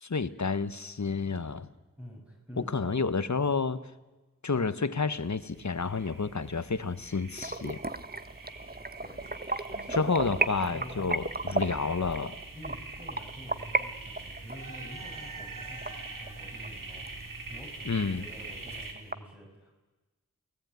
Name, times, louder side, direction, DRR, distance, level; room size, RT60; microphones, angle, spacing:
voice 1, 0.0-1.7 2.7-3.8 4.4-7.8 9.9-12.4 17.8-18.2, left 4 dB, 60° left, 14 dB, 1.5 m, -30 dB
voice 2, 2.0-3.1 9.0-9.3 9.7-11.2 12.5-19.7, equal, 5° right, -2 dB, 7.6 m, -47 dB
sound 1, 5.2-18.9, right 3 dB, 85° right, 3.9 m, -44 dB
sound 2, 7.4-13.8 14.2-16.7 17.1-17.2 17.6-17.7 18.0-18.1 18.4-19.1, right 2 dB, 30° right, 1.4 m, -33 dB
29.0 x 19.0 x 9.5 m, 1.2 s
wide cardioid pair, 45°, 32 cm